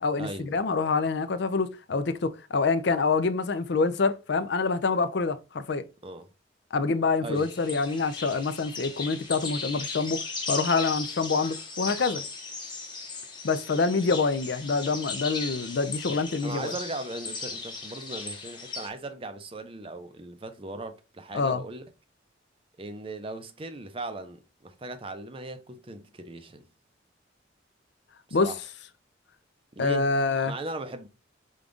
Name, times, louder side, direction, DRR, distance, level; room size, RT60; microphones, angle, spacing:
voice 1, 0.0-5.8 6.7-12.2 13.4-16.7 21.3-21.6 28.3-28.5 29.8-30.5, left 4 dB, 60° left, 0.4 m, -26 dB
sound 1, 7.3-18.9, left 4 dB, 25° left, 0.9 m, -37 dB
voice 2, 16.1-21.8 22.8-26.7 28.3-28.6 29.7-31.1, right 2 dB, 30° right, 0.5 m, -38 dB
5.1 x 2.4 x 3.7 m
head